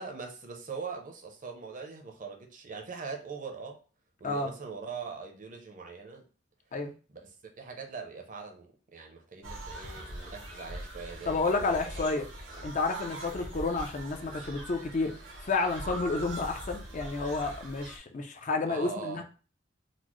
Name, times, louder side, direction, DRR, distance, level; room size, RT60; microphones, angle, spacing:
voice 1, 0.0-3.8 4.2-6.3 7.1-12.1 12.5-12.7 13.3-13.4 18.7-19.2, right 5 dB, 45° right, 0.6 m, -42 dB
sound 1, 9.4-18.0, right 1 dB, 90° right, 0.9 m, -42 dB
voice 2, 11.3-12.3 12.6-15.1 15.4-19.2, left 3 dB, 40° left, 0.4 m, -30 dB
4.0 x 2.0 x 3.0 m
head